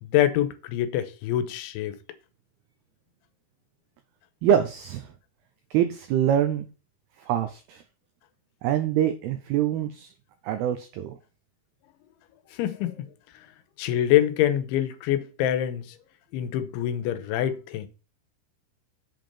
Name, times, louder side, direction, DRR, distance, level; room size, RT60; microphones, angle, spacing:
voice 1, 0.0-2.0 12.5-13.1 13.8-15.8 16.3-17.9, left 12 dB, 85° left, 3.2 m, -25 dB
voice 2, 4.4-5.1 5.7-6.7 7.3-7.8 8.6-10.1 10.4-11.2, right 10 dB, 75° right, 2.4 m, -24 dB
7.9 x 5.4 x 7.1 m
omnidirectional pair, 5.4 m